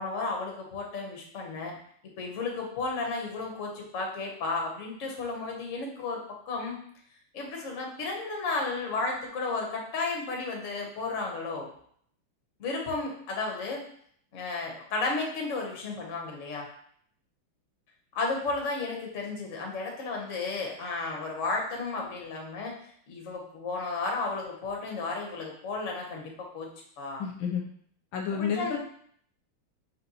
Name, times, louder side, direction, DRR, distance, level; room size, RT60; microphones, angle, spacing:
voice 1, 0.0-1.8 2.2-6.2 6.5-6.8 7.3-11.7 12.6-13.8 14.3-16.7 18.1-22.7 23.1-26.7 27.0-27.2 28.3-28.8, left 3 dB, 50° left, 0 dB, 1.0 m, -33 dB
voice 2, 27.2-27.6 28.1-28.8, left 7 dB, 75° left, 1 dB, 1.3 m, -30 dB
4.3 x 3.9 x 2.8 m, 0.63 s
omnidirectional pair, 2.3 m